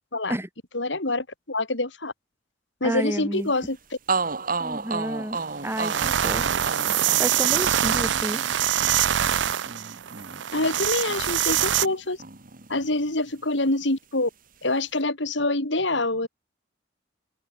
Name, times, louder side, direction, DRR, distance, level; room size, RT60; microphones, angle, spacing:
voice 1, 0.7-2.1 2.8-3.8 10.5-12.2 12.7-14.3 14.6-16.3, left 2 dB, 65° left, 3.5 m, -26 dB
voice 2, 2.8-3.5 4.6-5.4 5.6-5.9 6.2-6.4 7.0-8.4, equal, 15° right, 4.0 m, -30 dB
sound 1, 3.7-3.8 4.1-11.9 12.2-13.4, right 4 dB, 45° right, 2.4 m, -33 dB
sound 2, 5.4-5.5 5.7-11.9, right 10 dB, 65° right, 0.6 m, -24 dB
head